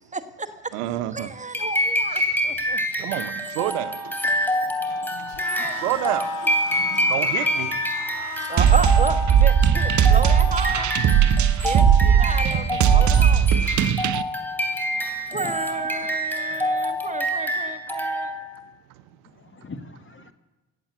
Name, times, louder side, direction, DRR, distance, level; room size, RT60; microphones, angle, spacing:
voice 1, 0.1-2.8 5.4-5.8 6.9-7.0 8.4-10.9 11.6-13.5 15.3-18.4, right 3 dB, 15° right, 10 dB, 1.2 m, -32 dB
voice 2, 0.7-1.3 3.0-4.2 5.1-5.3 5.8-6.3 6.8-7.8, right 15 dB, 65° right, 14 dB, 0.8 m, -28 dB
sound 1, 1.5-18.6, equal, 5° left, 3.1 m, -26 dB
sound 2, 5.3-9.3, left 11 dB, 65° left, 1.6 m, -37 dB
sound 3, 8.6-14.2, right 8 dB, 35° right, 0.8 m, -18 dB
voice 3, 14.9-15.5 15.8-16.1 19.4-20.3, left 3 dB, 25° left, 9 dB, 1.5 m, -42 dB
16.0 x 8.4 x 8.2 m, 1.1 s
figure-of-eight pair, 45°, 49 cm